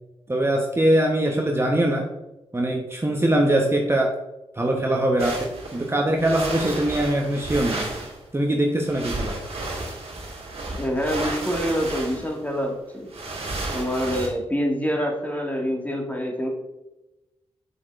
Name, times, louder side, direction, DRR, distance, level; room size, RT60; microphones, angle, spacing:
voice 1, 0.3-2.1 2.5-4.1 4.6-7.8 8.3-9.4, right 1 dB, 20° right, 0 dB, 1.0 m, -22 dB
sound 1, 5.2-8.2 8.8-14.3, right 2 dB, 60° right, 2.0 m, -32 dB
voice 2, 10.7-13.1 13.7-16.5, equal, 15° left, 0 dB, 1.9 m, -26 dB
6.9 x 6.1 x 2.5 m, 0.98 s
supercardioid pair, 45°, 11 cm